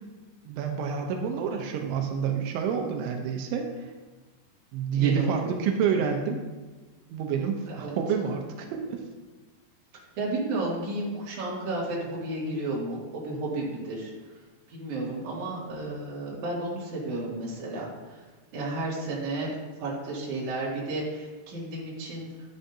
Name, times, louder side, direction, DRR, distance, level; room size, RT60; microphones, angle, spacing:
voice 1, 0.4-3.7 4.7-6.4 7.1-9.0, right 7 dB, 85° right, 3 dB, 3.2 m, -28 dB
voice 2, 4.9-5.5 7.7-8.0 10.2-14.1 14.7-18.2 18.5-22.3, right 2 dB, 50° right, -6 dB, 3.3 m, -32 dB
10.5 x 10.5 x 2.8 m, 1.3 s
omnidirectional pair, 5.2 m